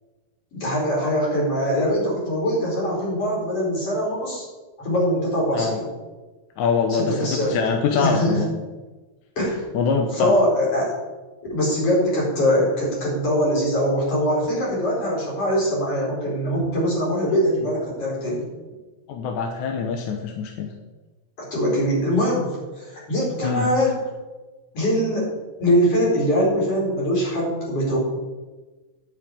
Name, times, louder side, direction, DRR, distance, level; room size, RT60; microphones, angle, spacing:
voice 1, 0.5-4.5 4.8-5.9 7.0-7.6 7.9-8.4 9.4-9.6 10.0-10.9 11.5-18.4 21.5-24.0 24.7-25.3 25.6-28.0, equal, 50° left, -5 dB, 5.4 m, -22 dB
voice 2, 6.6-8.5 9.7-10.4 19.1-20.7 23.4-23.7, left 5 dB, 85° left, 3 dB, 2.3 m, -24 dB
9.8 x 6.5 x 8.7 m, 1.2 s
omnidirectional pair, 3.4 m